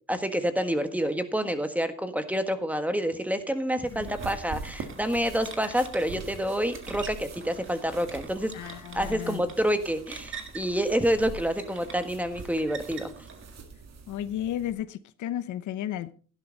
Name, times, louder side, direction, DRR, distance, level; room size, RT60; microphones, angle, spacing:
voice 1, 0.1-8.5 8.9-13.1, equal, 5° right, 1.6 m, -28 dB
sound 1, 3.8-14.7, right 4 dB, 60° right, 2.1 m, -44 dB
sound 2, 4.1-13.6, right 5 dB, 40° right, 1.9 m, -46 dB
voice 2, 8.5-9.4 14.1-16.1, left 11 dB, 75° left, 0.8 m, -33 dB
12.5 x 11.0 x 4.0 m
cardioid pair, 90°, 30 cm